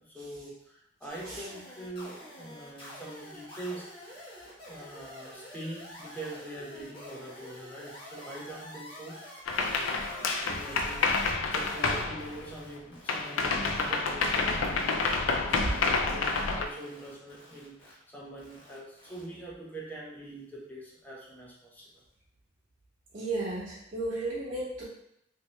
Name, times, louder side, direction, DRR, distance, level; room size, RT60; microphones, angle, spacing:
voice 1, 0.0-4.0 4.6-21.8, right 1 dB, 10° left, -5 dB, 0.8 m, -44 dB
sound 1, 1.1-13.9 14.2-15.2 15.5-15.9 16.1-16.4 16.7-17.9 18.4-19.2, left 1 dB, 25° left, 1.1 m, -47 dB
sound 2, 9.5-12.8 13.1-16.7, left 4 dB, 80° left, 0.4 m, -29 dB
voice 2, 23.1-24.8, right 2 dB, 45° right, -10 dB, 1.3 m, -33 dB
3.4 x 2.8 x 3.0 m, 0.79 s
head